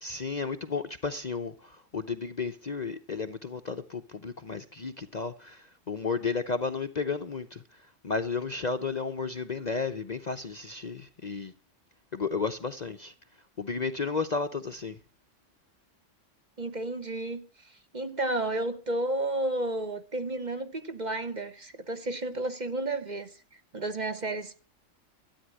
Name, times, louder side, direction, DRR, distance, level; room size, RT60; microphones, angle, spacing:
voice 1, 0.0-7.6 8.0-11.5 12.1-13.1 13.6-15.0, left 4 dB, 40° left, 0.7 m, -33 dB
voice 2, 16.6-23.3 23.7-24.6, right 2 dB, 35° right, 1.2 m, -32 dB
13.0 x 9.0 x 7.6 m
omnidirectional pair, 1.3 m